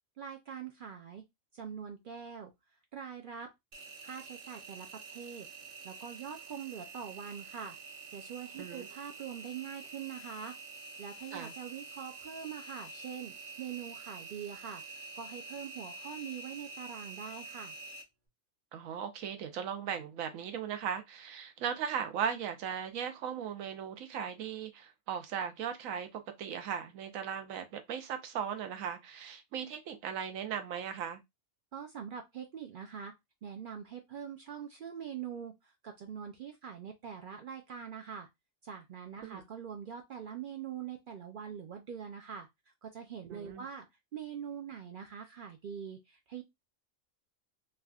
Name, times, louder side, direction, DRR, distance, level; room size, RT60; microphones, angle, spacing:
voice 1, 0.2-1.2 1.5-2.5 2.9-3.5 4.0-5.5 5.8-7.8 8.1-10.6 11.0-17.8 31.7-33.1 33.4-38.3 38.6-42.5 42.8-43.9 44.1-46.4, right 8 dB, 65° right, 0.5 m, -43 dB
Engine, 3.7-18.0, right 4 dB, 45° right, 0.8 m, -47 dB
voice 2, 18.7-31.2 39.2-39.4 43.3-43.7, right 8 dB, 85° right, 1.1 m, -38 dB
3.3 x 2.5 x 2.3 m
omnidirectional pair, 1.4 m